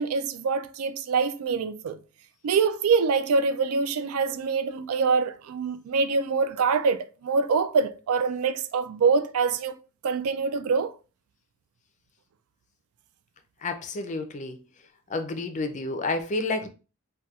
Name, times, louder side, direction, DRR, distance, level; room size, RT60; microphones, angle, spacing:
voice 1, 0.0-2.0 2.4-9.8 10.0-10.9, right 5 dB, 90° right, 0.4 m, -25 dB
voice 2, 13.6-14.6 15.1-16.7, left 3 dB, 35° left, 0.4 m, -30 dB
4.1 x 2.2 x 2.4 m
head